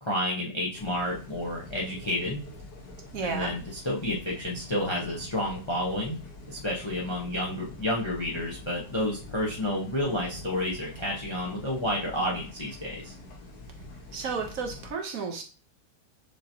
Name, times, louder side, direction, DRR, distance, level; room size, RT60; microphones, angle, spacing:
voice 1, 0.0-2.4 3.2-6.2 6.5-13.1, left 1 dB, 35° left, -3 dB, 0.4 m, -30 dB
sound 1, 0.7-14.9, left 2 dB, 70° left, 1.5 m, -45 dB
voice 2, 3.1-3.5 14.1-15.4, right 5 dB, 65° right, 4 dB, 1.0 m, -32 dB
6.5 x 2.8 x 2.6 m, 0.37 s
omnidirectional pair, 1.8 m